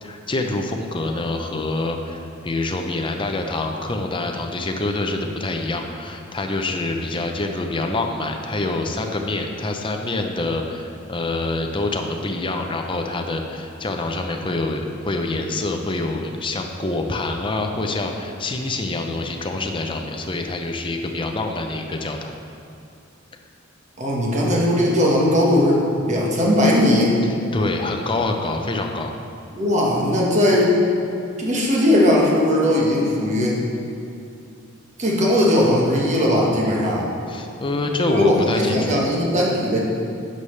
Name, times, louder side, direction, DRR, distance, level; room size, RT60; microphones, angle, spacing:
voice 1, 0.0-22.3 27.5-29.1 37.3-39.0, left 2 dB, 25° left, 3 dB, 0.6 m, -26 dB
voice 2, 24.0-27.1 29.5-30.7 31.4-33.6 35.0-37.1 38.0-39.8, left 1 dB, 35° right, -3 dB, 1.5 m, -18 dB
11.0 x 6.6 x 3.3 m, 2.6 s
head